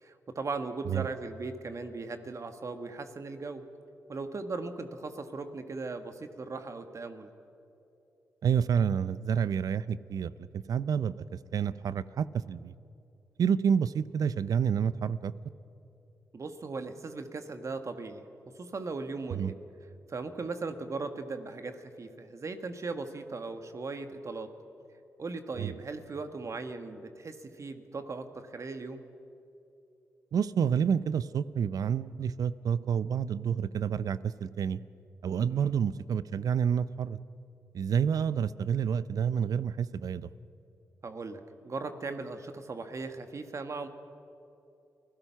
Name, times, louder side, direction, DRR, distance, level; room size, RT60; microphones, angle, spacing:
voice 1, 0.0-3.6 4.1-7.3 16.3-18.3 18.6-19.6 20.1-24.5 25.2-29.0 35.5-35.7 41.0-43.9, right 3 dB, 50° right, 7 dB, 1.8 m, -38 dB
voice 2, 8.4-11.1 11.5-12.7 13.4-15.3 19.3-19.5 25.6-25.7 30.3-34.8 35.2-37.2 37.7-40.3, right 7 dB, 65° right, 17 dB, 0.7 m, -29 dB
29.5 x 16.5 x 5.8 m, 2.7 s
supercardioid pair, 40°, 7 cm